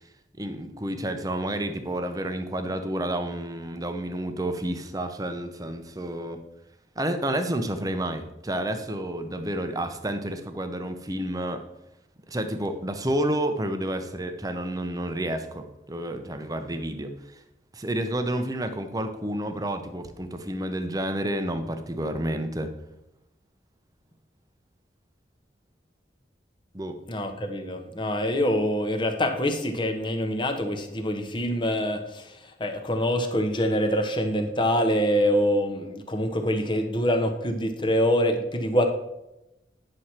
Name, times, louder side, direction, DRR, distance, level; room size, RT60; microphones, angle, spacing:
voice 1, 0.4-6.4 7.0-11.6 12.3-17.4 17.7-22.7 26.7-27.0, right 1 dB, 20° right, 8 dB, 0.7 m, -30 dB
voice 2, 27.1-38.9, equal, 25° left, 5 dB, 0.9 m, -25 dB
9.6 x 6.3 x 4.3 m, 0.91 s
head